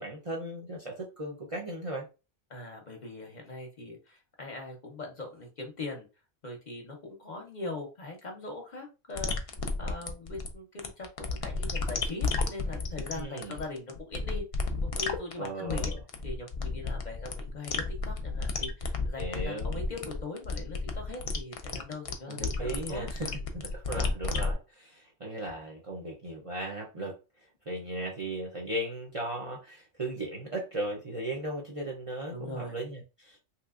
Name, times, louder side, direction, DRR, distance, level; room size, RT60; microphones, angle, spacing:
voice 1, 0.0-2.1 13.1-13.6 15.4-16.0 19.2-19.8 22.3-27.2 27.7-33.4, right 1 dB, 40° right, 0.5 m, -37 dB
voice 2, 2.5-6.1 6.4-14.4 14.8-15.9 16.2-23.4 32.3-32.8, left 2 dB, 45° left, 0.8 m, -41 dB
sound 1, 9.2-24.5, left 4 dB, 65° left, 0.3 m, -32 dB
3.2 x 3.0 x 2.4 m
omnidirectional pair, 1.2 m